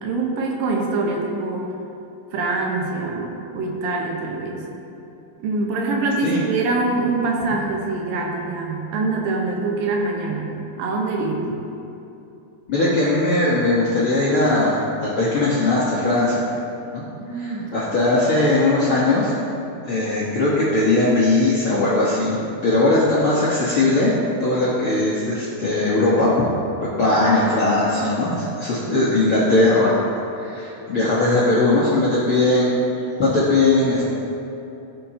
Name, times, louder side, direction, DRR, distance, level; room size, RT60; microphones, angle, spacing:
voice 1, 0.0-1.7 2.3-4.6 5.4-11.4 17.1-17.8 26.9-27.2, right 3 dB, 80° right, 0 dB, 2.7 m, -24 dB
voice 2, 12.7-16.4 16.9-17.0 17.3-19.3 19.9-24.1 24.4-26.5 27.0-29.9 30.3-34.1, left 2 dB, 60° left, -8 dB, 1.4 m, -19 dB
17.0 x 5.8 x 2.8 m, 2.9 s
omnidirectional pair, 4.1 m